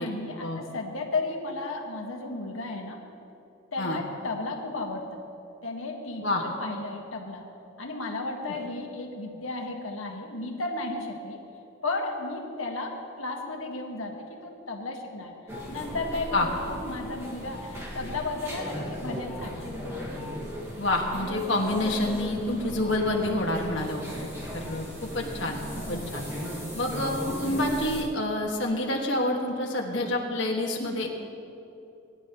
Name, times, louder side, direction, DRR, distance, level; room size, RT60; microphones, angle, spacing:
voice 1, 0.0-3.0 3.7-5.2 5.6-7.5 7.8-11.4 11.8-15.3 15.7-19.7 25.9-26.2, left 2 dB, 80° left, 2 dB, 1.6 m, -34 dB
sound 1, 15.5-28.0, equal, 15° right, 1.8 m, -37 dB
voice 2, 20.8-26.3 26.7-31.1, left 1 dB, 60° left, 0 dB, 1.7 m, -28 dB
20.5 x 11.0 x 3.0 m, 2.8 s
head